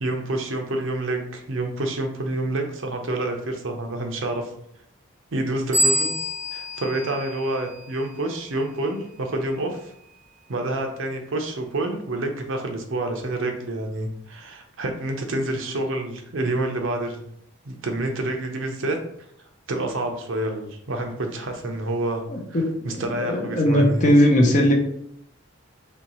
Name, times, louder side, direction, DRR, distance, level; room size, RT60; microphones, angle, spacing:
voice 1, 0.0-4.5 5.3-6.1 6.5-9.9 10.5-17.2 17.6-19.0 19.7-22.2 22.5-22.6 22.8-24.1, right 2 dB, 70° right, 4 dB, 0.7 m, -28 dB
sound 1, 5.7-8.2, equal, 35° right, 1.3 m, -26 dB
voice 2, 22.3-24.7, equal, 35° left, 1 dB, 0.7 m, -19 dB
4.3 x 3.0 x 3.0 m, 0.72 s
head